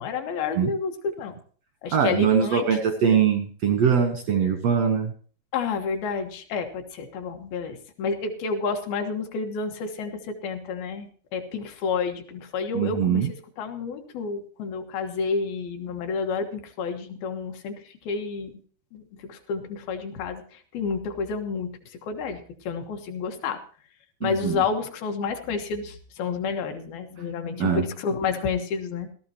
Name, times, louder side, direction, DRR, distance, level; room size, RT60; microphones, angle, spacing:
voice 1, 0.0-1.3 1.8-2.7 5.5-18.6 18.9-23.6 24.2-29.1, left 5 dB, 70° left, 5 dB, 3.0 m, -30 dB
voice 2, 1.9-5.1 12.7-13.3 24.2-24.6 27.6-27.8, right 7 dB, 75° right, 6 dB, 1.5 m, -22 dB
18.0 x 13.5 x 2.9 m, 0.43 s
omnidirectional pair, 4.7 m